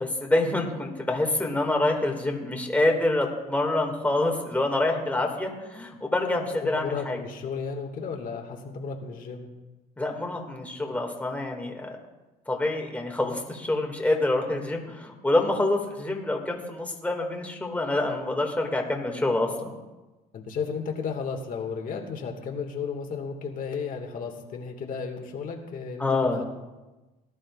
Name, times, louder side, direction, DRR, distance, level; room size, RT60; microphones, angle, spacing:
voice 1, 0.0-7.2 10.0-11.9 12.5-19.7 26.0-26.4, left 2 dB, 10° left, 1 dB, 2.1 m, -26 dB
voice 2, 6.6-9.5 20.3-26.4, left 5 dB, 55° left, 3 dB, 1.9 m, -34 dB
18.5 x 11.5 x 2.5 m, 1.1 s
cardioid pair, 110°, 17 cm